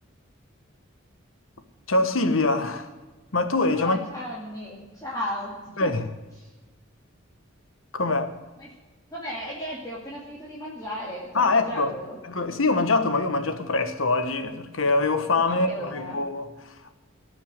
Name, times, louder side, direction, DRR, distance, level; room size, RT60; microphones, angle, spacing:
voice 1, 1.9-2.9 3.3-4.0 5.8-6.0 7.9-8.4 11.3-11.9 12.2-16.9, left 3 dB, 75° left, 1.4 m, -24 dB
voice 2, 3.7-5.9 6.4-6.5 8.6-8.7 9.1-12.2 15.5-16.2, equal, 20° left, 2.4 m, -35 dB
18.0 x 6.7 x 9.0 m
head